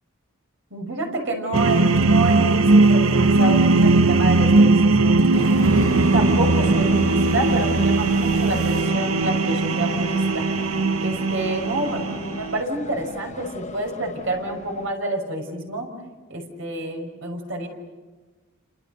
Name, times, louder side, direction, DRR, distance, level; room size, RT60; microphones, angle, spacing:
voice 1, 0.7-5.2 5.6-10.5 11.0-15.9 16.3-17.7, right 1 dB, 65° right, 2 dB, 6.1 m, -28 dB
sound 1, 1.5-12.6, right 3 dB, 90° right, 1.0 m, -18 dB
sound 2, 5.3-14.9, left 2 dB, 35° left, 1.3 m, -34 dB
30.0 x 27.0 x 6.8 m, 1.3 s
head